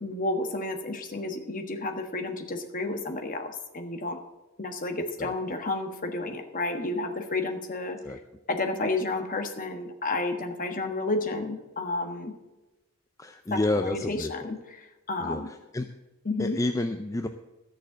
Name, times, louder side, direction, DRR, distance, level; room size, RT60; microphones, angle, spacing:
voice 1, 0.0-4.2 4.6-8.0 8.5-12.3 13.5-15.5 16.2-16.6, left 2 dB, 40° left, 6 dB, 1.4 m, -31 dB
voice 2, 13.2-14.3 15.2-15.9 16.4-17.3, left 2 dB, 15° left, 7 dB, 0.4 m, -29 dB
13.5 x 6.6 x 7.6 m, 1.1 s
head